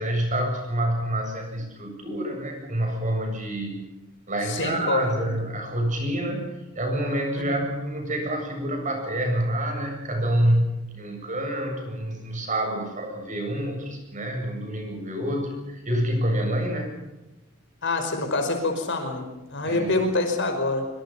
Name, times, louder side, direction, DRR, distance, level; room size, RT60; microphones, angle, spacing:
voice 1, 0.0-3.9 4.3-17.0 19.6-20.1, right 1 dB, 35° right, 4 dB, 7.6 m, -27 dB
voice 2, 4.4-5.2 7.4-7.5 17.8-20.9, left 2 dB, 55° left, 6 dB, 5.3 m, -26 dB
25.0 x 24.5 x 5.8 m, 1.0 s
head